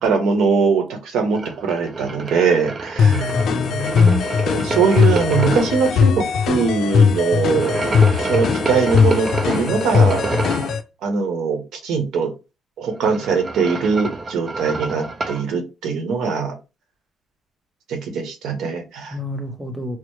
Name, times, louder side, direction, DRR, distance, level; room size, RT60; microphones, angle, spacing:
voice 1, 0.0-3.2 4.4-7.8 8.2-10.2 11.0-12.3 12.8-16.5 17.9-19.1, right 5 dB, 85° right, 0.9 m, -21 dB
sound 1, 1.3-5.9 7.5-10.8 12.9-15.5, right 3 dB, 35° right, 0.5 m, -28 dB
sound 2, 3.0-10.8, left 6 dB, 70° left, 0.4 m, -19 dB
voice 2, 3.0-4.3 19.1-20.0, equal, ahead, 0.7 m, -27 dB
4.5 x 2.0 x 3.0 m
cardioid pair, 90°, 0 cm